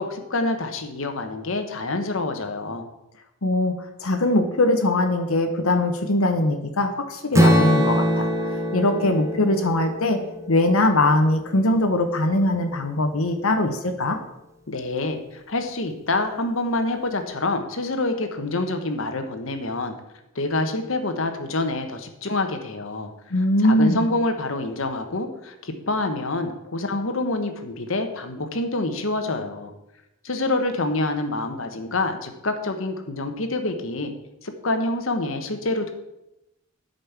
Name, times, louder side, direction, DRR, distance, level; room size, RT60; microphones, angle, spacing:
voice 1, 0.0-2.9 14.7-19.9 20.3-23.1 23.6-29.7 30.2-34.1 34.4-35.9, left 2 dB, 70° left, 6 dB, 1.2 m, -27 dB
voice 2, 3.4-10.2 10.5-14.2 23.3-24.1, left 1 dB, 85° left, 5 dB, 1.0 m, -21 dB
Strum, 7.3-11.5, equal, 15° right, 1.0 m, -23 dB
9.2 x 5.4 x 7.3 m, 0.89 s
head